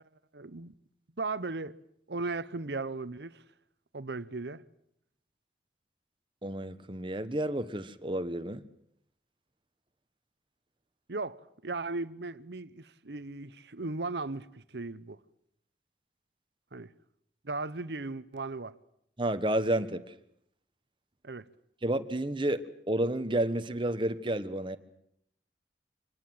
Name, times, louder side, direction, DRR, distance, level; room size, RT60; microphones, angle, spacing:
voice 1, 0.3-0.7 1.2-1.7 2.1-3.4 3.9-4.6 11.1-15.2 16.7-16.9 17.4-18.7 21.2-21.5, right 3 dB, 70° right, 1.0 m, -37 dB
voice 2, 6.4-8.6 19.2-20.0 21.8-24.8, right 1 dB, 30° right, 1.3 m, -30 dB
26.0 x 20.0 x 7.9 m
head